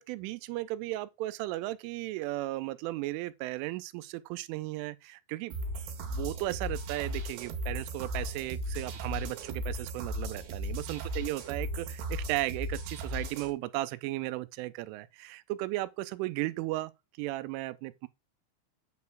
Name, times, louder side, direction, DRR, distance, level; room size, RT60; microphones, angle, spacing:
voice 1, 0.0-5.5 6.0-16.9 17.2-18.1, right 17 dB, 85° right, 3.0 m, -35 dB
sound 1, 5.5-13.5, right 1 dB, 65° right, 3.6 m, -36 dB
9.4 x 4.2 x 6.9 m
omnidirectional pair, 5.7 m